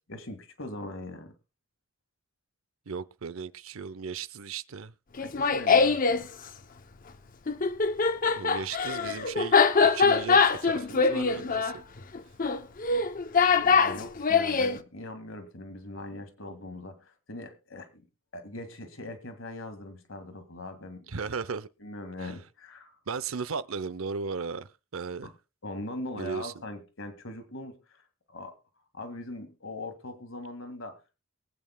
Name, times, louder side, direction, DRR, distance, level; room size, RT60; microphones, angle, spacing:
voice 1, 0.1-1.3 5.2-6.3 13.6-18.1 18.3-21.1 21.8-23.0 25.2-25.3 25.6-28.0 28.3-28.5 28.9-31.0, left 1 dB, 65° left, 2.0 m, -41 dB
voice 2, 2.9-4.9 8.3-11.7 21.1-21.7 22.2-22.3 23.1-25.3 26.1-26.5, right 5 dB, 75° right, 0.7 m, -36 dB
Laughter, 5.2-6.2 7.5-14.8, left 5 dB, 40° left, 0.7 m, -23 dB
23.5 x 8.7 x 2.3 m
head